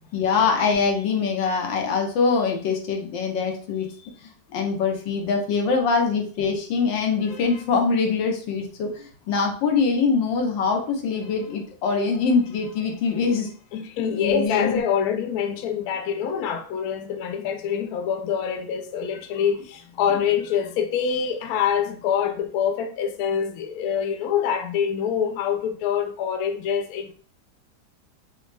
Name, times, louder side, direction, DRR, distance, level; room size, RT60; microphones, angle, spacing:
voice 1, 0.1-4.1 4.5-13.5 14.1-14.8 20.1-20.2, left 5 dB, 85° left, 1.6 m, -23 dB
voice 2, 13.7-27.1, left 8 dB, 70° left, 1.0 m, -25 dB
6.0 x 2.1 x 3.3 m
omnidirectional pair, 2.0 m